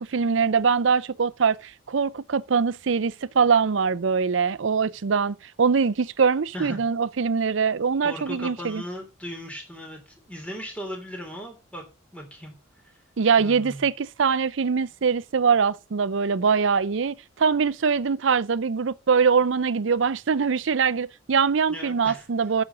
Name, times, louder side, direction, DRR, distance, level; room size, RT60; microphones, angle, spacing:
voice 1, 0.0-8.8 13.2-22.6, right 5 dB, 65° right, 0.5 m, -23 dB
voice 2, 8.0-11.8 12.1-12.5 12.8-13.0 13.4-13.9 21.7-22.3, equal, 5° left, 3.3 m, -37 dB
8.6 x 6.3 x 7.2 m
head